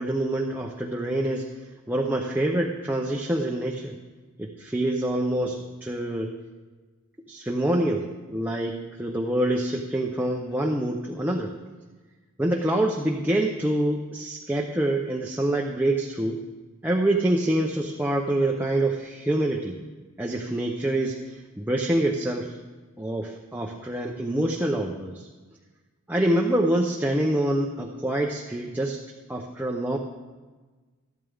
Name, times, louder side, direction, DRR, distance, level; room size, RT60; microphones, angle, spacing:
voice 1, 0.0-1.5 1.9-4.0 4.4-6.3 7.3-11.5 12.4-16.4 16.8-19.8 20.2-22.6 23.0-25.3 26.1-29.0 29.3-30.0, right 1 dB, 10° right, 0 dB, 0.7 m, -26 dB
14.0 x 12.5 x 3.5 m, 1.3 s
head